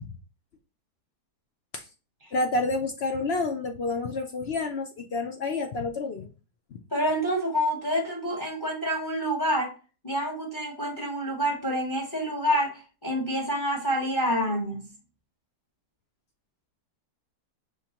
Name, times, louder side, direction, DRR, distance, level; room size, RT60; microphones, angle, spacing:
voice 1, 2.3-6.3 6.7-6.8, left 3 dB, 65° left, 0.6 m, -29 dB
voice 2, 6.9-9.7 10.0-14.9, equal, 15° left, 1.0 m, -27 dB
5.6 x 3.2 x 2.9 m
omnidirectional pair, 1.7 m